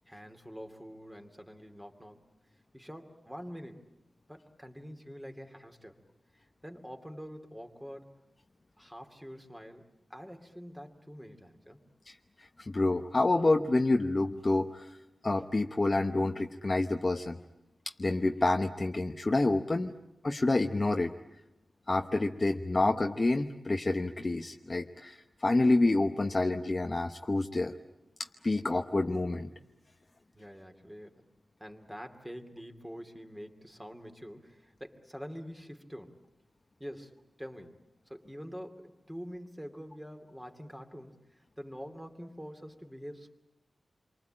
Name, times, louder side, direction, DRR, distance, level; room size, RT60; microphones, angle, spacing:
voice 1, 0.1-2.3 2.7-3.9 4.3-6.0 6.3-8.2 8.8-11.8 30.3-31.3 31.6-36.2 36.8-43.3, equal, 5° right, 5 dB, 2.5 m, -46 dB
voice 2, 12.6-14.9 15.2-17.4 18.0-19.9 20.2-21.1 21.9-27.7 28.4-29.5, left 2 dB, 30° left, 5 dB, 0.9 m, -28 dB
28.0 x 24.0 x 8.8 m, 0.89 s
wide cardioid pair, 140°, 0 cm